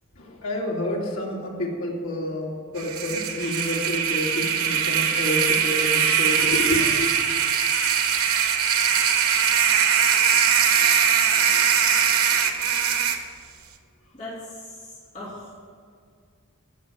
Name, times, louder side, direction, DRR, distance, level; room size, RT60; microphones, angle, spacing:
voice 1, 0.2-7.1 12.5-12.9, left 1 dB, 70° left, -2 dB, 2.7 m, -29 dB
sound 1, 2.8-13.2, right 7 dB, 85° right, 1.2 m, -21 dB
voice 2, 14.1-15.5, left 1 dB, 35° left, -8 dB, 3.3 m, -39 dB
15.5 x 6.4 x 7.5 m, 2.2 s
head